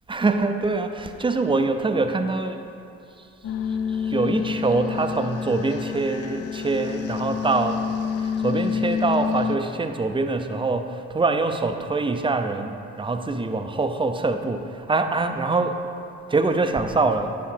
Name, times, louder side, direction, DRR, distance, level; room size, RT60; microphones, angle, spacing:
voice 1, 0.1-2.6 3.9-7.8 8.2-15.7 16.3-17.4, right 3 dB, 15° right, 6 dB, 0.5 m, -24 dB
sound 1, 3.4-9.6, left 7 dB, 50° left, 0.5 m, -28 dB
9.6 x 3.8 x 5.7 m, 2.6 s
cardioid pair, 90°, 30 cm